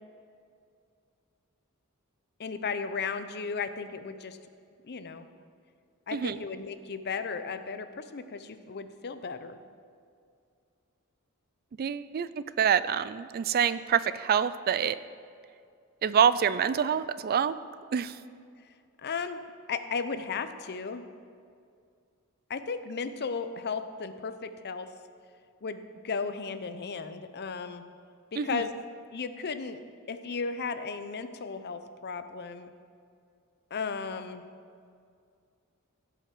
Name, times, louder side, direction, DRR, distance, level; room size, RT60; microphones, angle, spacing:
voice 1, 2.4-4.4 4.8-5.3 6.1-9.6 19.0-19.4 19.7-21.0 22.5-24.9 25.6-27.9 28.3-28.7 29.1-29.8 30.1-32.7 33.7-34.4, left 5 dB, 50° left, 10 dB, 0.6 m, -35 dB
voice 2, 11.8-15.0 16.0-17.6 17.9-18.2 28.4-28.6, right 8 dB, 45° right, 15 dB, 0.3 m, -26 dB
16.0 x 5.7 x 6.1 m, 2.3 s
head